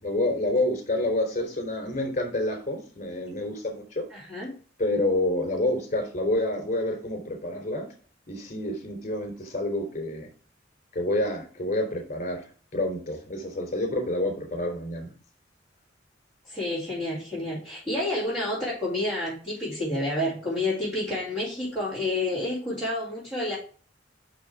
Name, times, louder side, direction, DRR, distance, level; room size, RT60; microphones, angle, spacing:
voice 1, 0.0-4.1 4.8-7.9 8.3-10.3 10.9-15.1, left 1 dB, 40° left, 3 dB, 3.6 m, -28 dB
voice 2, 4.1-4.5 16.5-23.6, left 1 dB, 10° right, -11 dB, 4.2 m, -29 dB
6.4 x 6.3 x 4.9 m, 0.40 s
head